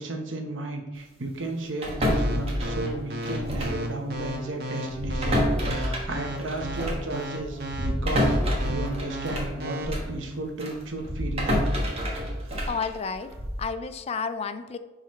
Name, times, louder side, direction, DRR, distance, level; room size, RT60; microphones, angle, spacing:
voice 1, 0.0-8.3 8.6-11.6 12.0-12.2, right 2 dB, 80° right, 3 dB, 1.1 m, -34 dB
sound 1, 1.8-3.9 4.1-4.3 4.9-10.2 10.6-13.7, equal, 30° right, 1.3 m, -28 dB
sound 2, 2.1-9.9, right 1 dB, 55° right, 1.3 m, -34 dB
voice 2, 12.7-14.8, left 5 dB, 35° left, 11 dB, 0.4 m, -31 dB
10.5 x 4.0 x 3.2 m, 1.1 s
head